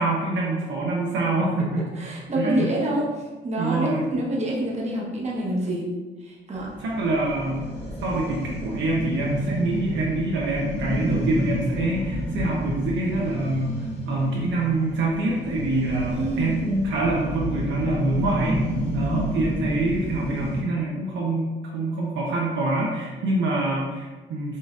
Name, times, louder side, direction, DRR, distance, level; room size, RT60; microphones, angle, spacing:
voice 1, 0.0-1.9 2.4-2.7 3.6-4.1 6.8-7.7 8.0-18.6 18.9-24.6, right 2 dB, 70° right, -3 dB, 0.7 m, -25 dB
voice 2, 2.0-3.0 3.4-5.9 6.2-6.7 16.1-16.7, right 1 dB, 35° right, -4 dB, 1.1 m, -27 dB
sound 1, 6.6-20.6, equal, 30° left, 1.5 m, -30 dB
5.4 x 2.6 x 2.4 m, 1.3 s
cardioid pair, 90°, 20 cm